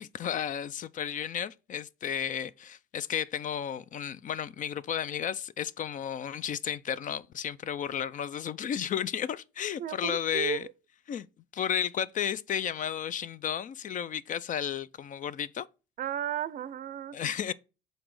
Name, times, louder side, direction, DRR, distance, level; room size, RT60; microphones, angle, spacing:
voice 1, 0.0-10.7 11.1-11.3 11.5-15.7 17.1-17.5, left 9 dB, 45° left, 0.4 m, -33 dB
voice 2, 9.8-10.7 16.0-17.2, right 10 dB, 45° right, 0.5 m, -34 dB
5.9 x 3.9 x 4.8 m
supercardioid pair, 80°, 19 cm